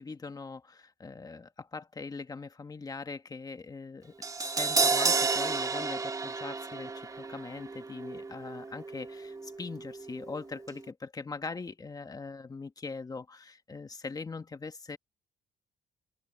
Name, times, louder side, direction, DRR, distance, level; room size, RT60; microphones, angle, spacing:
voice 1, 0.0-15.0, left 4 dB, 20° left, 1.6 m, -41 dB
Crash cymbal, 4.2-10.4 10.6-10.8, right 4 dB, 20° right, 1.8 m, -32 dB
open air
cardioid pair, 110°, 17 cm